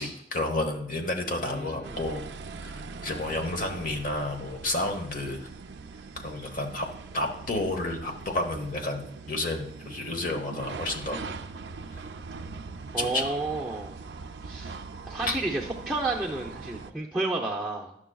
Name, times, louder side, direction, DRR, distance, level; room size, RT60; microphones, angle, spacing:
voice 1, 0.0-2.2 2.6-2.7 3.0-5.4 6.2-6.9 7.1-11.2 11.9-12.1 13.0-13.3 15.3-15.4, left 2 dB, 50° left, 4 dB, 1.0 m, -31 dB
voice 2, 1.4-2.0 12.9-14.0 14.4-14.8 15.1-18.0, right 2 dB, 5° right, -4 dB, 0.6 m, -31 dB
sound 1, 1.8-16.9, right 4 dB, 70° right, 0.4 m, -41 dB
11.5 x 6.2 x 2.3 m, 0.76 s
head